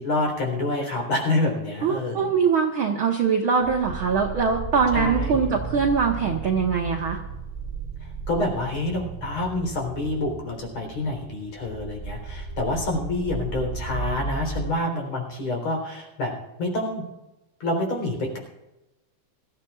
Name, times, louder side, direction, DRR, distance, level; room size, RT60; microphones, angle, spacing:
voice 1, 0.0-2.3 4.9-5.5 8.3-16.3 16.6-17.0 17.6-18.4, left 2 dB, 50° left, 0 dB, 4.7 m, -27 dB
voice 2, 1.8-7.2, right 5 dB, 70° right, 1 dB, 1.2 m, -22 dB
sound 1, 3.6-14.7, right 4 dB, 50° right, 0.5 m, -35 dB
24.5 x 14.5 x 2.4 m, 0.97 s
omnidirectional pair, 4.1 m